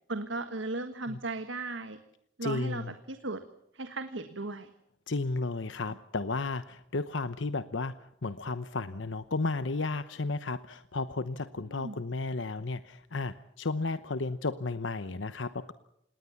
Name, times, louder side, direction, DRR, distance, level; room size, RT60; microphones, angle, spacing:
voice 1, 0.1-2.0 2.4-3.4 3.7-4.7 11.7-12.0, right 2 dB, 80° right, 9 dB, 1.5 m, -36 dB
voice 2, 2.4-2.9 5.1-8.0 8.2-15.7, left 3 dB, 80° left, 12 dB, 0.9 m, -33 dB
27.5 x 19.5 x 7.2 m, 0.76 s
head